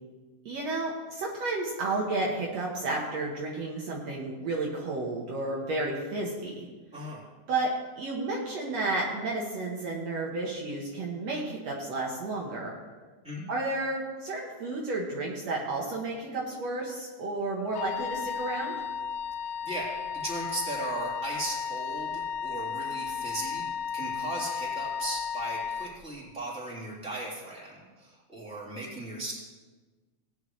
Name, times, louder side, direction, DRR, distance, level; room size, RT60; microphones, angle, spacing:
voice 1, 0.5-6.7 7.5-7.7 8.0-12.8 13.5-18.8, right 2 dB, 60° right, -3 dB, 2.3 m, -32 dB
Wind instrument woodwind instrument, 17.7-25.9, left 7 dB, 80° left, 1.3 m, -34 dB
voice 2, 19.4-23.6 23.9-29.3, right 1 dB, ahead, -7 dB, 3.1 m, -37 dB
18.5 x 9.5 x 3.2 m, 1.3 s
omnidirectional pair, 3.5 m